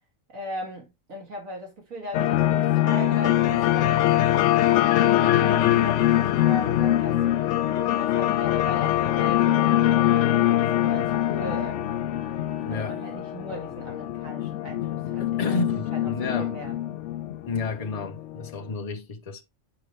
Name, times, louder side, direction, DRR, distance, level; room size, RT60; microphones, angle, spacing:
voice 1, 0.3-4.0 4.8-7.2 7.8-11.9 12.7-15.6 15.9-16.1 16.4-16.7, right 1 dB, 85° right, 2.7 m, -38 dB
sound 1, 2.1-18.5, left 13 dB, 70° left, 0.8 m, -23 dB
voice 2, 12.7-13.0 15.2-16.6 17.5-19.4, left 4 dB, 35° left, 0.8 m, -31 dB
7.0 x 5.3 x 3.2 m
omnidirectional pair, 1.4 m